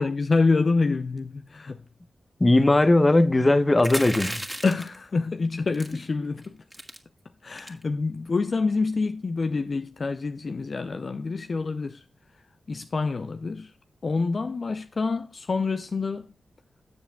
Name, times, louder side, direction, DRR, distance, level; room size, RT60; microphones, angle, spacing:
voice 1, 0.0-1.8 4.6-6.6 7.4-12.0 12.3-12.4 12.7-13.8 14.0-16.3, left 4 dB, 55° left, 0.5 m, -27 dB
voice 2, 2.4-4.4, left 2 dB, 30° left, 1.0 m, -19 dB
sound 1, 3.8-5.0 5.7-6.0 6.4-6.5 6.7-7.0 7.5-7.8, equal, 5° right, 1.9 m, -34 dB
13.0 x 7.1 x 2.3 m
supercardioid pair, 40°, 0 cm